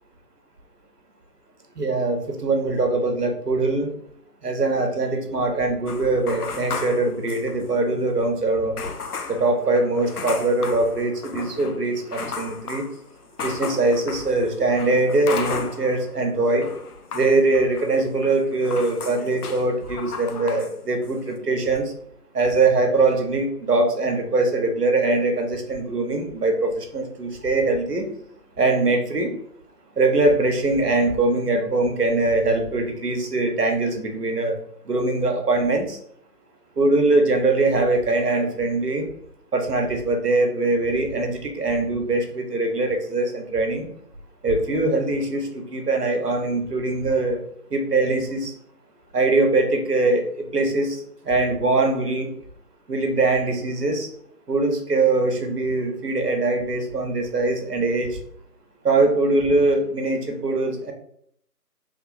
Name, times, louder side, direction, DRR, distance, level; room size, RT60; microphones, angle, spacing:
voice 1, 1.8-3.9 4.4-8.8 9.3-12.8 13.4-16.7 17.1-21.9 22.3-28.1 28.6-29.3 30.0-34.5 34.9-36.0 36.8-39.1 39.5-43.9 44.4-47.4 47.7-48.5 49.1-52.3 52.9-54.1 54.5-58.2 58.8-60.9, right 2 dB, 70° right, 4 dB, 1.1 m, -22 dB
sound 1, 5.9-7.9 8.2-8.3 8.8-16.1 16.4-20.7 21.0-21.4, left 5 dB, 65° left, 0.6 m, -35 dB
3.3 x 2.8 x 3.8 m, 0.68 s
figure-of-eight pair, 155°, 48 cm